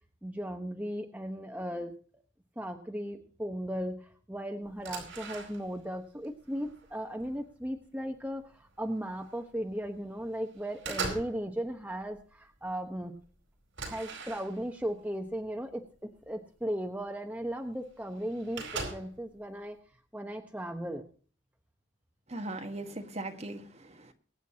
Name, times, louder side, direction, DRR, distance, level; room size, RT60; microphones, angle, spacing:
voice 1, 0.2-1.9 2.6-13.1 13.8-19.8 20.1-21.1, equal, 10° right, 1.0 m, -36 dB
sound 1, 4.6-5.9 6.2-7.4 8.0-8.2 8.5-9.5 9.9-10.3 10.5-11.5 11.7-12.2 12.7-12.8 13.0-13.1 13.7-14.8 15.7-15.8 16.2-16.3 17.4-17.5 17.7-17.8 18.0-19.3, right 4 dB, 70° right, 4.7 m, -40 dB
voice 2, 22.3-24.1, right 2 dB, 35° right, 1.4 m, -39 dB
23.0 x 9.1 x 2.9 m
head